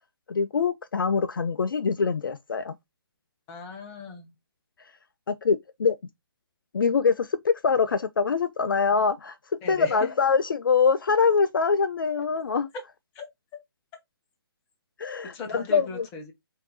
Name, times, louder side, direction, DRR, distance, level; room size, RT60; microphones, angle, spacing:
voice 1, 0.3-2.7 5.3-6.0 6.7-9.4 9.7-12.7 15.0-16.1, left 5 dB, 55° left, 0.4 m, -24 dB
voice 2, 3.5-4.3 9.6-10.0 13.1-13.3 15.3-16.3, left 4 dB, 15° left, 0.9 m, -38 dB
5.0 x 2.7 x 2.8 m
figure-of-eight pair, 140°, 13 cm